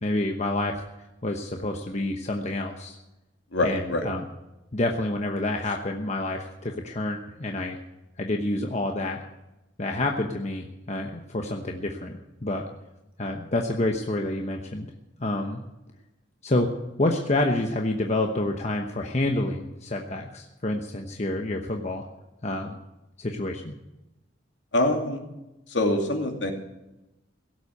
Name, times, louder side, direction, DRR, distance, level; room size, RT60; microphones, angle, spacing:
voice 1, 0.0-0.8 1.2-3.0 3.6-4.2 4.7-7.8 8.2-9.2 9.8-12.6 13.2-14.9 15.2-15.6 16.4-16.7 17.0-22.1 22.4-22.8 23.2-23.7, left 2 dB, 35° left, 3 dB, 1.0 m, -28 dB
voice 2, 3.5-4.0 24.7-25.2 25.7-26.5, left 1 dB, 70° left, 2 dB, 2.5 m, -24 dB
17.0 x 7.8 x 8.5 m, 0.96 s
head